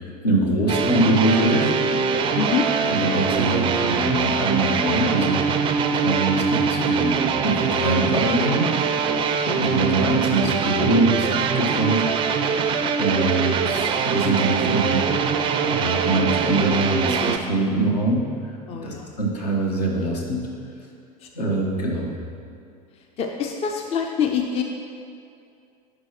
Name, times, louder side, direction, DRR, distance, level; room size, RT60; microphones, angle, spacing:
voice 1, 0.0-2.1 2.9-5.5 5.9-8.7 9.6-12.0 13.0-15.1 15.7-18.6 18.8-20.5 21.3-22.1, right 1 dB, 70° left, -1 dB, 1.3 m, -23 dB
sound 1, 0.7-17.4, right 6 dB, 25° right, 0.4 m, -23 dB
voice 2, 2.3-2.7 9.3-9.6 18.7-19.1 21.2-21.6 23.0-24.6, left 7 dB, 30° left, 3 dB, 0.5 m, -26 dB
11.0 x 4.9 x 3.0 m, 2.5 s
figure-of-eight pair, 80°, 21 cm